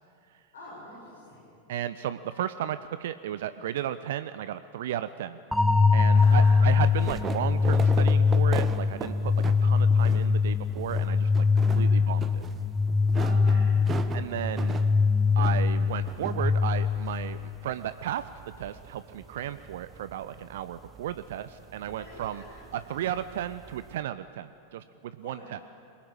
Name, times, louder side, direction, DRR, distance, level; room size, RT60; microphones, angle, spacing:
voice 1, 0.5-1.5 6.1-6.6 11.6-12.0 13.2-13.9 21.8-22.5 25.2-25.6, left 1 dB, 65° left, -5 dB, 7.9 m, -45 dB
voice 2, 1.7-5.4 5.9-12.4 14.1-14.8 15.4-22.4 22.7-25.6, right 11 dB, 55° right, 14 dB, 0.6 m, -34 dB
sound 1, 5.5-17.5, left 4 dB, ahead, 0.9 m, -23 dB
sound 2, 6.1-24.0, right 6 dB, 25° right, 1.2 m, -41 dB
23.0 x 21.0 x 8.9 m, 2.6 s
figure-of-eight pair, 90°, 0 cm